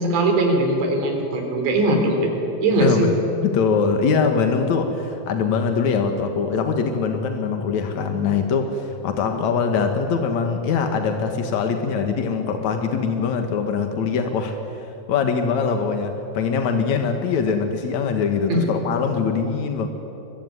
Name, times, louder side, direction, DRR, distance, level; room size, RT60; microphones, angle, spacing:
voice 1, 0.0-2.3 2.6-3.1 18.5-18.7, right 1 dB, 60° right, 3 dB, 5.6 m, -20 dB
voice 2, 3.4-19.9, left 5 dB, 75° left, 5 dB, 1.6 m, -23 dB
25.0 x 23.0 x 9.8 m, 2.9 s
omnidirectional pair, 5.8 m